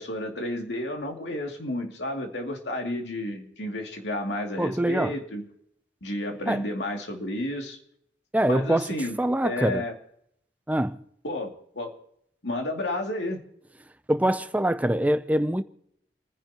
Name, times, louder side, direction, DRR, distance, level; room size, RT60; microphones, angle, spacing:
voice 1, 0.0-5.5 6.0-7.8 8.5-9.2 9.4-9.9 11.2-11.9 12.4-13.4, left 1 dB, 85° left, 2.5 m, -31 dB
voice 2, 4.6-5.1 6.5-6.6 8.3-9.8 10.7-11.0 14.1-15.6, right 1 dB, 10° right, 0.5 m, -24 dB
30.0 x 10.5 x 2.9 m
head